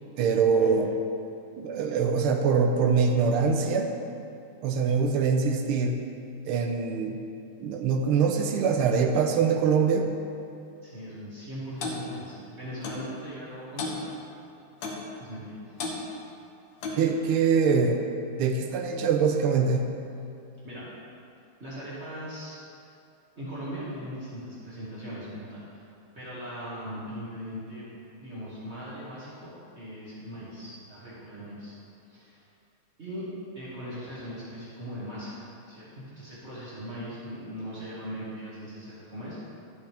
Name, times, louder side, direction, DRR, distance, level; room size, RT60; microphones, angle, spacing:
voice 1, 0.2-0.9 1.6-3.9 4.6-6.0 6.5-7.2 7.6-10.1 17.0-18.1 18.4-19.9, right 5 dB, 85° right, 3 dB, 1.6 m, -24 dB
voice 2, 10.8-14.1 15.2-16.0 20.6-20.9 21.6-22.8 23.4-25.9 26.2-27.9 28.2-31.7 32.1-32.5 33.0-33.3 33.5-39.4, equal, 30° right, -10 dB, 2.0 m, -39 dB
Clock, 11.8-12.0 12.8-13.1 13.8-14.0 14.8-15.1 15.8-16.0 16.8-17.1, left 3 dB, 65° left, 1.6 m, -33 dB
11.5 x 8.0 x 3.4 m, 2.6 s
omnidirectional pair, 2.4 m